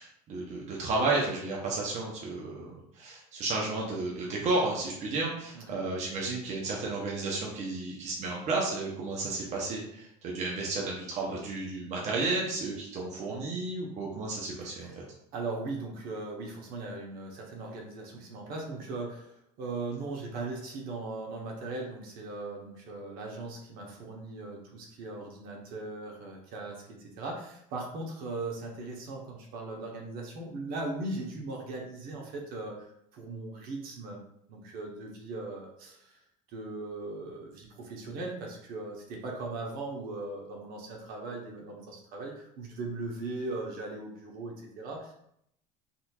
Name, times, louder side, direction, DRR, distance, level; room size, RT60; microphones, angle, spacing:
voice 1, 0.0-2.7 3.0-14.9, right 3 dB, 45° right, -3 dB, 0.9 m, -32 dB
voice 2, 5.5-5.9 14.6-15.0 15.3-32.9 33.1-34.2 34.5-36.2 36.5-45.1, right 2 dB, 60° right, -1 dB, 1.1 m, -39 dB
4.1 x 2.7 x 2.4 m, 0.72 s
supercardioid pair, 105°, 17 cm